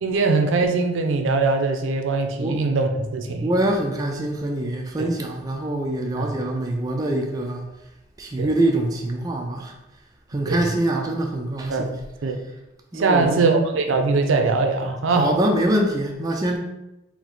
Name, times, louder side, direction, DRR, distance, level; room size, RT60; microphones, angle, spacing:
voice 1, 0.0-3.5 5.0-5.1 6.2-6.3 8.4-8.5 10.4-10.7 11.7-11.9 12.2-12.4 12.9-15.3, right 3 dB, 80° right, 5 dB, 0.5 m, -21 dB
voice 2, 3.4-7.6 8.2-9.8 10.3-11.9 12.9-13.7 15.1-16.6, right 1 dB, 20° right, 1 dB, 0.3 m, -24 dB
4.5 x 2.0 x 3.9 m, 0.94 s
head